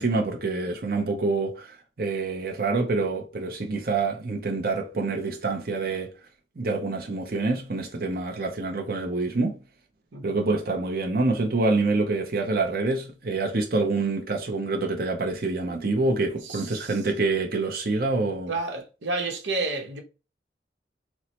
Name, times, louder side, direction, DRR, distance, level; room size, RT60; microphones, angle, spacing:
voice 1, 0.0-6.1 6.6-9.6 10.2-18.5, right 3 dB, 55° right, 0.7 m, -26 dB
voice 2, 16.4-17.0 18.5-20.0, right 3 dB, 90° right, 0.9 m, -31 dB
4.6 x 2.0 x 4.2 m
head